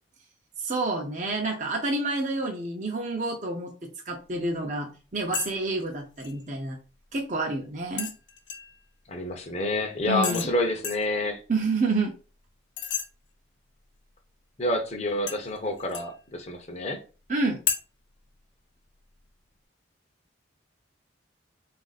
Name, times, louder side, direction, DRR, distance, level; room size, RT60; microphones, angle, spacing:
voice 1, 0.6-3.7 4.1-6.8 7.1-8.1 10.1-10.5 11.5-12.1 17.3-17.6, right 2 dB, 40° right, 0.6 m, -28 dB
sound 1, 5.3-5.5 5.8-6.3 8.0-8.8 10.2-10.5 10.8-11.1 12.8-13.1 15.3-16.1 17.7-17.8, left 7 dB, 75° left, 0.6 m, -31 dB
voice 2, 9.1-11.4 14.6-17.0, left 1 dB, 35° left, 0.7 m, -28 dB
4.0 x 2.5 x 4.0 m
head